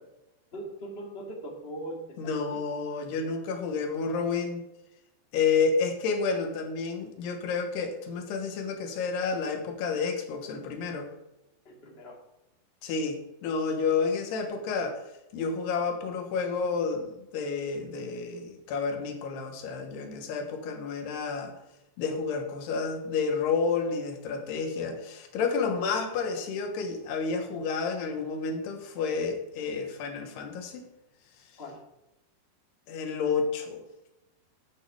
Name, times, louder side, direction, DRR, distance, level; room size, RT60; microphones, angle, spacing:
voice 1, 0.5-2.0 2.3-2.6 11.6-12.1 31.6-31.8, right 1 dB, 35° left, 0 dB, 0.9 m, -40 dB
voice 2, 2.2-4.6 5.3-11.1 12.8-15.0 15.3-21.5 22.0-30.9 32.9-33.8, left 5 dB, 75° left, 5 dB, 3.2 m, -30 dB
9.2 x 8.6 x 4.9 m, 0.93 s
omnidirectional pair, 4.9 m